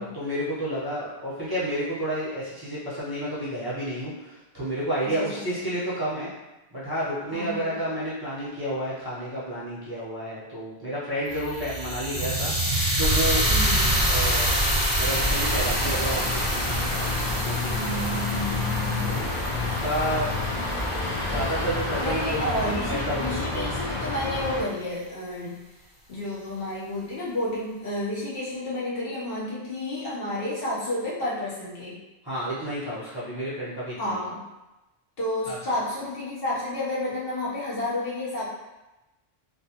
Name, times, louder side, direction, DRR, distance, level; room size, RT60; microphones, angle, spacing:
voice 1, 0.0-6.3 6.7-13.5 14.1-14.6 15.0-17.9 18.3-18.4 19.1-20.3 21.3-23.7 32.2-34.2 35.5-35.6, equal, 25° right, -10 dB, 0.6 m, -31 dB
voice 2, 5.0-5.7 7.3-7.8 13.5-14.0 17.6-19.2 22.0-25.6 26.1-32.0 34.0-34.4 35.2-38.5, left 1 dB, 65° left, -7 dB, 0.9 m, -31 dB
sound 1, 11.3-21.4, right 1 dB, 90° left, 1.1 m, -26 dB
sound 2, 15.1-24.6, left 2 dB, 50° left, 0.4 m, -29 dB
sound 3, 19.1-19.8 21.3-21.7 23.7-24.3, left 1 dB, 30° left, 1.1 m, -43 dB
2.4 x 2.2 x 2.7 m, 1.0 s
omnidirectional pair, 1.1 m